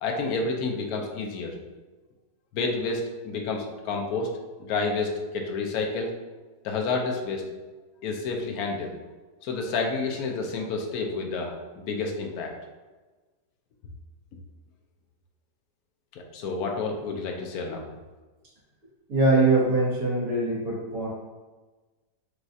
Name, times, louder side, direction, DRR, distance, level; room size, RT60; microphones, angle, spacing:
voice 1, 0.0-1.6 2.5-4.3 4.7-6.1 6.6-7.4 8.0-8.9 9.4-12.5 16.1-17.8, left 3 dB, 70° left, 2 dB, 1.0 m, -29 dB
voice 2, 19.1-21.1, right 2 dB, 65° right, -6 dB, 2.0 m, -22 dB
6.2 x 2.4 x 2.7 m, 1.2 s
omnidirectional pair, 1.9 m